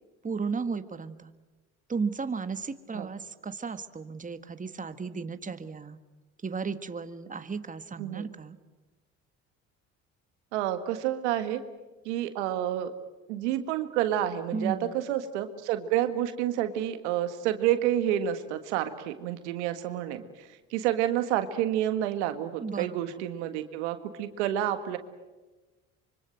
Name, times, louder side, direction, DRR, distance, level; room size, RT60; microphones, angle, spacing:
voice 1, 0.2-1.3 1.9-6.0 6.4-8.6 14.5-15.0 22.6-23.0, right 5 dB, 25° right, 10 dB, 1.6 m, -34 dB
voice 2, 10.5-11.6 12.1-12.9 13.3-25.0, right 11 dB, 90° right, 9 dB, 1.8 m, -29 dB
25.5 x 24.5 x 7.8 m, 1.2 s
supercardioid pair, 70°, 34 cm